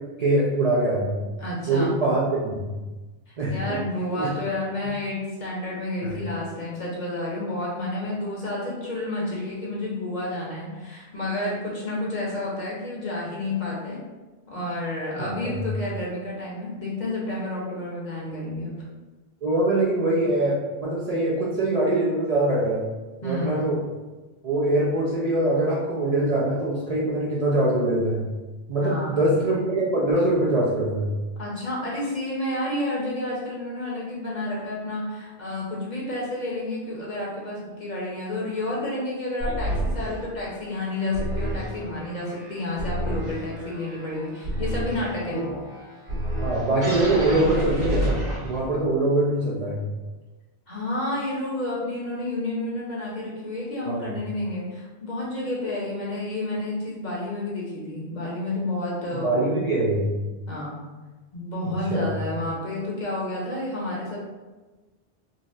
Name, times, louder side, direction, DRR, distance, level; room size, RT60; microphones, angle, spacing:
voice 1, 0.2-1.2 1.7-2.6 3.4-3.8 4.2-4.3 6.0-6.2 15.4-15.6 19.4-22.8 23.2-23.8 24.4-28.2 28.7-31.1 45.3-45.5 46.4-49.8 53.8-54.0 59.2-60.2 61.6-62.1, right 1 dB, 50° right, -6 dB, 0.5 m, -23 dB
voice 2, 1.4-2.0 3.3-14.0 14.5-18.8 23.2-23.7 28.8-29.4 31.4-45.4 50.7-59.6 60.5-60.8 61.3-64.2, left 1 dB, 50° left, -5 dB, 0.8 m, -30 dB
sound 1, 39.4-48.8, equal, 85° right, 1.5 m, -30 dB
4.0 x 2.0 x 2.5 m, 1.2 s
omnidirectional pair, 1.1 m